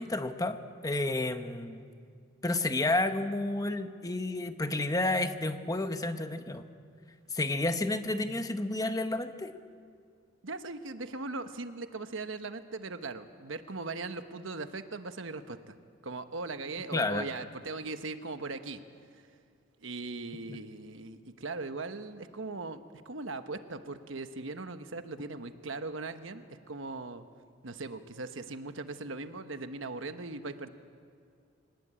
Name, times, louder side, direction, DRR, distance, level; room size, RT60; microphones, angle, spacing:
voice 1, 0.0-1.8 2.4-6.6 7.3-9.5 16.9-17.3 20.5-20.6, left 2 dB, 20° left, 9 dB, 0.9 m, -31 dB
voice 2, 10.4-15.7 16.0-18.8 19.1-19.2 19.8-27.3 27.6-30.7, right 3 dB, 75° right, 9 dB, 1.2 m, -39 dB
24.0 x 19.5 x 8.8 m, 2.2 s
head